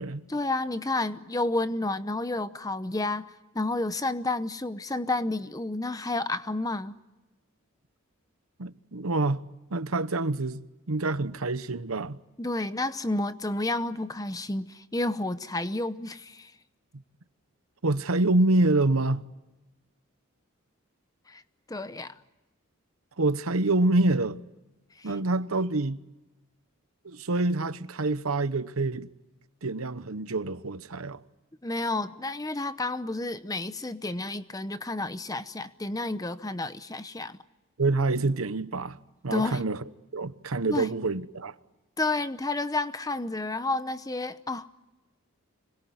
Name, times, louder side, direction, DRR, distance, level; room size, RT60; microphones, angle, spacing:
voice 1, 0.3-6.9 12.4-16.5 21.3-21.4 21.7-22.1 25.0-25.1 31.6-37.4 39.3-39.7 40.7-40.9 42.0-44.7, left 2 dB, 15° left, 0.8 m, -30 dB
voice 2, 8.6-9.4 9.7-12.2 17.8-19.2 23.2-24.4 25.0-26.0 27.0-29.1 29.6-31.2 37.8-39.0 39.2-39.8 40.1-41.5, right 2 dB, 80° right, 1.0 m, -26 dB
26.0 x 22.0 x 9.5 m
head